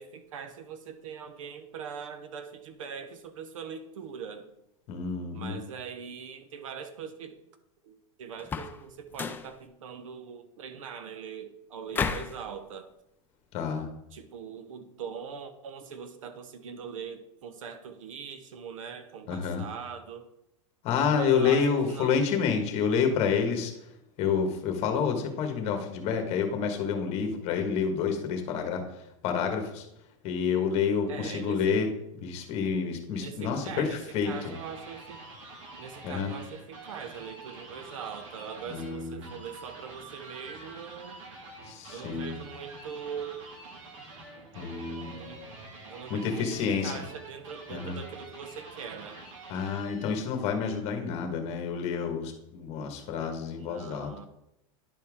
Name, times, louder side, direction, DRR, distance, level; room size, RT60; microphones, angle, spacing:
voice 1, 0.0-4.5 5.3-7.4 7.8-12.9 14.1-20.3 21.1-22.1 31.1-31.8 33.1-35.2 35.8-41.2 41.9-43.4 44.9-45.4 45.9-49.2 53.6-54.3, right 7 dB, 85° right, 10 dB, 1.0 m, -42 dB
voice 2, 4.9-5.6 13.5-13.9 19.3-19.7 20.8-23.9 24.2-29.9 30.2-31.9 32.2-34.5 36.0-36.3 38.7-39.2 41.6-42.3 44.5-45.1 46.1-47.0 47.7-48.0 49.5-54.1, left 6 dB, 40° left, 5 dB, 1.5 m, -29 dB
sound 1, 8.4-8.8 9.1-9.5 11.9-12.4, left 5 dB, 10° left, 0.4 m, -32 dB
sound 2, 33.8-50.4, right 2 dB, 70° right, 2.1 m, -47 dB
10.5 x 4.5 x 3.6 m, 0.83 s
supercardioid pair, 145°, 16 cm